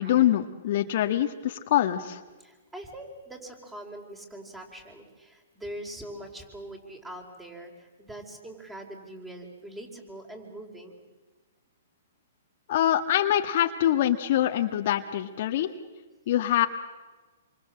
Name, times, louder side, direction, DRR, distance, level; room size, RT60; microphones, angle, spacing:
voice 1, 0.0-2.2 12.7-15.7 16.3-16.7, left 12 dB, 50° left, 6 dB, 1.4 m, -24 dB
voice 2, 2.4-11.0, right 1 dB, 10° right, 3 dB, 4.7 m, -43 dB
27.0 x 24.5 x 7.7 m, 1.3 s
hypercardioid pair, 145°, 0 cm